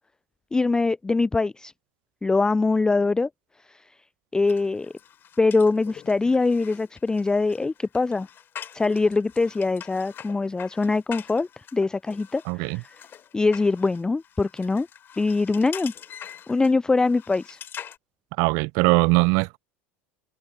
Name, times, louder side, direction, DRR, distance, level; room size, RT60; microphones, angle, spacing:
voice 1, 0.5-1.7 2.2-3.3 3.6-3.9 4.3-4.9 5.4-8.3 8.7-13.1 13.3-14.9 15.2-15.9 16.5-17.6, left 3 dB, 10° left, 0.4 m, -23 dB
sound 1, 4.5-18.0, left 9 dB, 35° left, 3.4 m, -44 dB
voice 2, 12.5-12.8 18.4-19.6, right 29 dB, 55° right, 0.6 m, -21 dB
figure-of-eight pair, 75°, 6 cm